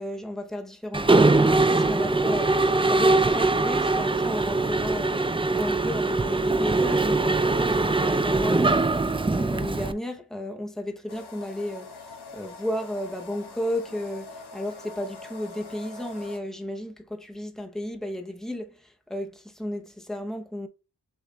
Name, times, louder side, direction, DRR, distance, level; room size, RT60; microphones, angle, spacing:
voice 1, 0.0-20.7, left 1 dB, ahead, 0.7 m, -33 dB
Mechanisms, 0.9-9.9, right 3 dB, 15° right, 0.3 m, -22 dB
sound 1, 11.1-16.4, left 3 dB, 70° left, 0.9 m, -43 dB
6.5 x 2.4 x 3.1 m
wide cardioid pair, 70°, 40 cm